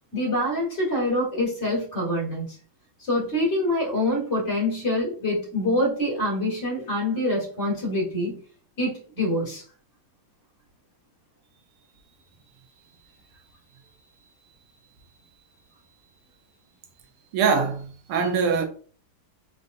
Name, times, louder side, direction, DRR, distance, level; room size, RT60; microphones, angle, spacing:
voice 1, 0.1-2.6 3.0-8.4 8.8-9.6, left 1 dB, 35° left, 2.1 m, -25 dB
voice 2, 17.3-18.7, right 5 dB, 85° right, 1.7 m, -23 dB
4.3 x 3.8 x 2.6 m
omnidirectional pair, 2.3 m